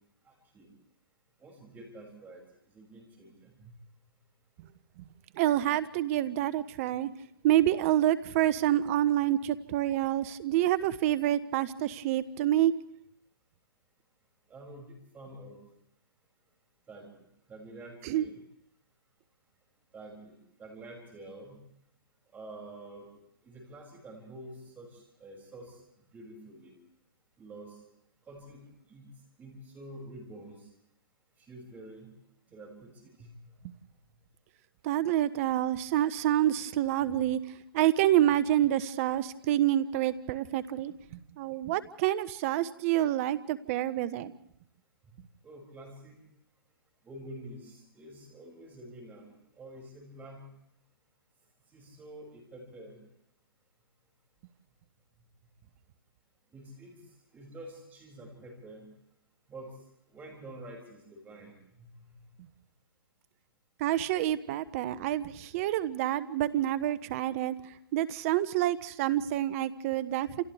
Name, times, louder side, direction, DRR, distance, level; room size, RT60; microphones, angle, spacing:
voice 1, 0.2-0.7 1.4-2.4 2.6-3.7 14.5-15.6 16.9-17.1 17.5-18.4 19.9-21.6 22.3-23.1 23.4-26.7 27.4-27.8 28.2-29.1 29.4-30.7 31.4-32.1 32.5-33.3 37.0-37.1 45.4-46.2 47.0-50.5 51.7-53.0 56.5-57.0 57.3-58.9 59.5-59.7 60.1-61.5, right 1 dB, 15° right, 0 dB, 6.7 m, -48 dB
voice 2, 5.4-7.1 7.4-12.7 18.0-18.2 34.8-37.4 37.7-44.3 63.8-67.6 67.9-70.4, right 13 dB, 35° right, 15 dB, 0.9 m, -27 dB
30.0 x 28.0 x 3.5 m, 0.76 s
figure-of-eight pair, 130°, 12 cm